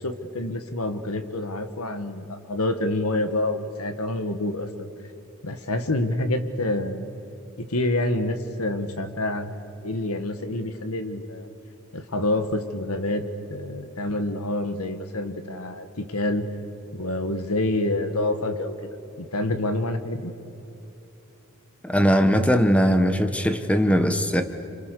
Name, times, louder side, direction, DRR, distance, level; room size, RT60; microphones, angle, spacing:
voice 1, 0.0-4.9 5.4-7.1 7.6-9.5 9.8-11.5 11.9-13.2 13.5-16.4 16.9-18.7 19.2-20.3, left 1 dB, 85° left, 8 dB, 1.9 m, -27 dB
voice 2, 21.8-24.4, equal, 5° left, 8 dB, 1.3 m, -20 dB
29.5 x 26.5 x 6.8 m, 2.9 s
head